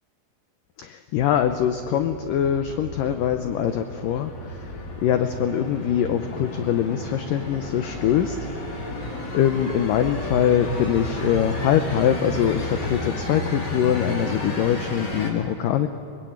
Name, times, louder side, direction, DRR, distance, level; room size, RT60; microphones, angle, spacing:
voice 1, 0.8-4.3 5.0-8.4 9.3-15.9, left 10 dB, 80° left, 8 dB, 1.9 m, -23 dB
sound 1, 1.2-15.3, left 1 dB, 30° left, 2.9 m, -32 dB
23.0 x 22.5 x 8.8 m, 2.4 s
omnidirectional pair, 4.9 m